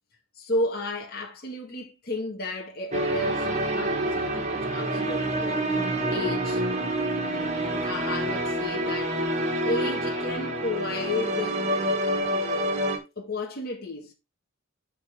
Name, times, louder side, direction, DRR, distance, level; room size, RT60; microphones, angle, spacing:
voice 1, 0.4-5.6 6.1-6.6 7.8-11.6 12.0-12.9 13.2-14.1, left 2 dB, 50° left, 1.7 m, -33 dB
sound 1, 2.9-13.0, right 1 dB, 35° right, 1.8 m, -27 dB
12.0 x 4.1 x 3.5 m
head